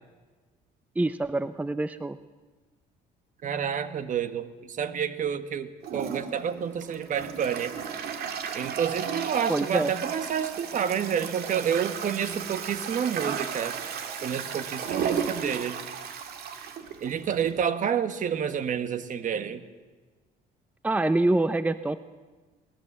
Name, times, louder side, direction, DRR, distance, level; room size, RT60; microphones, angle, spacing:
voice 1, 1.0-2.2 9.5-9.9 20.8-22.0, right 2 dB, 10° right, 13 dB, 0.6 m, -25 dB
voice 2, 3.4-7.8 8.5-13.8 14.2-15.8 17.0-19.6, right 8 dB, 50° right, 11 dB, 1.5 m, -29 dB
Toilet flush, 5.8-17.6, right 7 dB, 65° right, 2.3 m, -34 dB
19.5 x 19.5 x 7.4 m, 1.3 s
cardioid pair, 110°, 17 cm